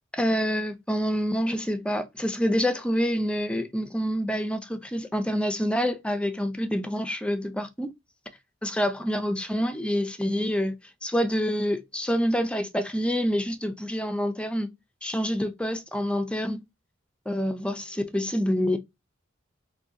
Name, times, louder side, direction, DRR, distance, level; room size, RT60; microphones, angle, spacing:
voice 1, 0.1-7.9 8.6-10.7 11.0-14.7 15.0-16.6 17.3-18.8, equal, 5° left, 0.4 m, -27 dB
2.8 x 2.7 x 3.6 m
head